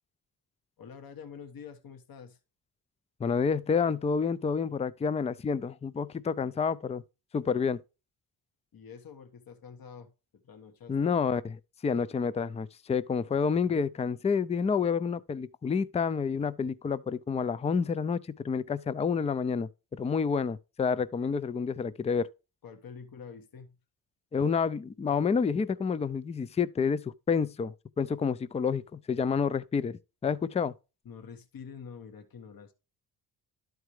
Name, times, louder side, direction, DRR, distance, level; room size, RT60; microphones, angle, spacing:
voice 1, 0.8-2.4 8.7-11.1 22.6-23.8 31.0-32.7, left 6 dB, 55° left, 1.3 m, -47 dB
voice 2, 3.2-7.0 7.3-7.8 10.9-11.5 11.8-19.7 20.0-22.3 24.3-30.7, left 6 dB, 15° left, 0.3 m, -29 dB
11.5 x 4.6 x 3.1 m
cardioid pair, 65°, 42 cm